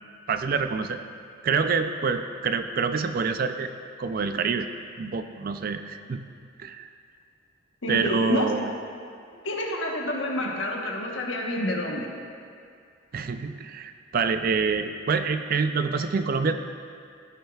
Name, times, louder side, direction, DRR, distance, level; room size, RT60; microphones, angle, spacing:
voice 1, 0.3-1.0 1.4-3.7 4.0-4.7 5.0-6.2 6.6-6.9 7.9-8.7 13.1-16.5, right 5 dB, 50° right, 9 dB, 0.4 m, -26 dB
voice 2, 7.8-8.5 9.4-12.1, left 1 dB, 80° left, 0 dB, 1.2 m, -28 dB
15.5 x 6.3 x 2.4 m, 2.3 s
head